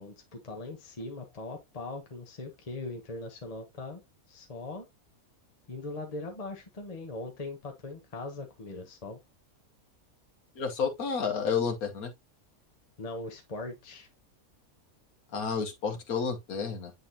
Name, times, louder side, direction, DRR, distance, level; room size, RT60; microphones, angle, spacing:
voice 1, 0.0-4.0 4.3-4.9 5.7-9.2 13.0-14.1, left 2 dB, 30° left, 1.1 m, -40 dB
voice 2, 10.6-12.1 15.3-16.9, left 6 dB, 85° left, 1.6 m, -30 dB
8.7 x 4.0 x 2.8 m
omnidirectional pair, 1.5 m